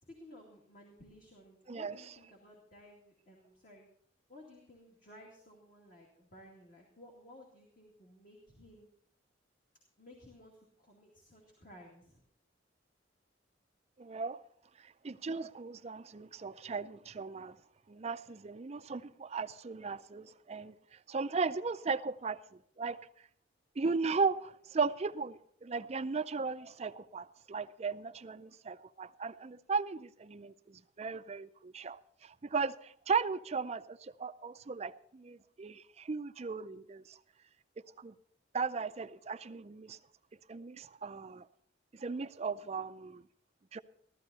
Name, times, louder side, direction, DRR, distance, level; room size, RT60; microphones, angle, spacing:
voice 1, 0.0-3.9 4.3-8.9 10.0-12.2, left 1 dB, 45° left, 2.3 m, -56 dB
voice 2, 14.0-14.4 14.8-17.6 17.9-23.0 23.8-37.2 38.0-38.1 38.5-40.0 40.5-41.5 41.9-43.2 43.7-43.8, right 4 dB, 35° right, 0.4 m, -37 dB
14.5 x 13.5 x 4.1 m
head